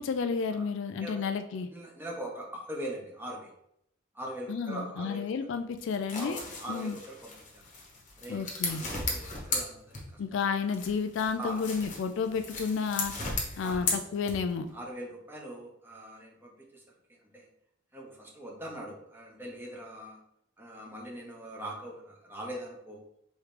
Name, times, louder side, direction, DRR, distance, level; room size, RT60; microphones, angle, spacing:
voice 1, 0.0-1.7 4.5-6.4 6.7-7.0 8.3-8.8 10.2-13.1 13.6-14.7, left 5 dB, 65° left, 9 dB, 0.3 m, -31 dB
voice 2, 1.7-3.5 4.1-5.2 6.2-7.6 8.2-10.0 11.4-11.6 13.6-13.9 14.7-16.8 17.3-17.5 17.9-20.2 20.6-23.0, right 1 dB, 10° right, -2 dB, 1.0 m, -41 dB
sound 1, 5.8-10.3 10.7-14.7, left 3 dB, 40° left, 1.0 m, -36 dB
4.8 x 3.2 x 3.3 m, 0.73 s
head